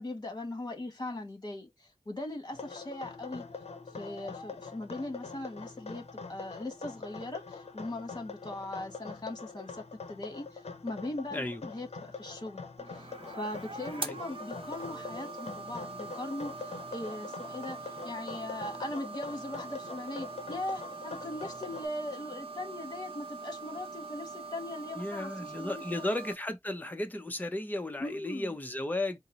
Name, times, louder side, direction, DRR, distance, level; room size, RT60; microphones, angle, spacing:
voice 1, 0.0-3.5 3.9-26.0 28.0-28.5, left 1 dB, 40° left, 1.4 m, -40 dB
sound 1, 2.5-21.9, left 4 dB, 70° left, 0.6 m, -44 dB
voice 2, 11.3-11.6 14.0-14.2 25.0-29.2, left 1 dB, 15° left, 0.7 m, -34 dB
sound 2, 12.8-26.3, right 3 dB, 55° right, 0.7 m, -43 dB
4.2 x 2.0 x 3.9 m
wide cardioid pair, 90°, 11 cm